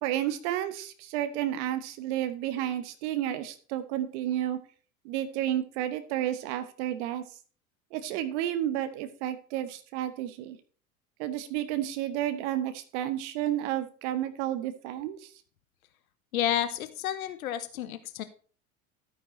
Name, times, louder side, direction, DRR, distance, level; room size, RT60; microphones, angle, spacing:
voice 1, 0.0-4.6 5.0-7.2 7.9-10.6 11.2-15.3, right 12 dB, 55° right, 10 dB, 1.1 m, -31 dB
voice 2, 16.3-18.2, left 11 dB, 70° left, 12 dB, 0.9 m, -30 dB
12.5 x 9.3 x 3.1 m, 0.41 s
figure-of-eight pair, 80°, 43 cm